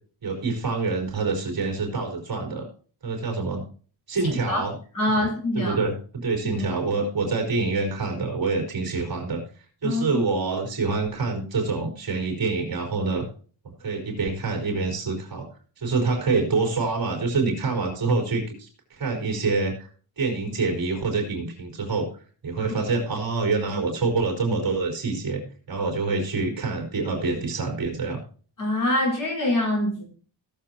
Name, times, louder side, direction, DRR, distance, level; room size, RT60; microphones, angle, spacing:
voice 1, 0.2-2.7 3.0-3.6 4.1-4.7 5.2-5.3 5.5-5.9 6.2-9.4 9.8-13.3 13.8-15.5 15.8-19.9 20.2-22.1 22.4-25.4 25.7-28.2, right 3 dB, 45° right, 1 dB, 4.2 m, -26 dB
voice 2, 4.9-5.8 6.6-6.7 9.8-10.2 22.6-22.8 28.6-30.0, left 1 dB, 40° left, -2 dB, 4.9 m, -24 dB
17.5 x 7.5 x 2.9 m, 0.41 s
wide cardioid pair, 135°, 47 cm